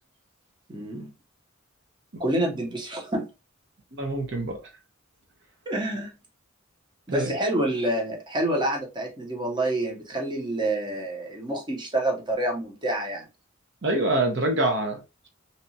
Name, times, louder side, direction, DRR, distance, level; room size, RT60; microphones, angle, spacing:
voice 1, 0.7-1.1 2.2-3.3 5.7-6.1 7.1-13.2, right 1 dB, 20° right, 0.8 m, -28 dB
voice 2, 4.0-4.6 7.1-7.3 13.8-15.0, right 1 dB, 60° right, 1.0 m, -25 dB
2.9 x 2.4 x 2.7 m
head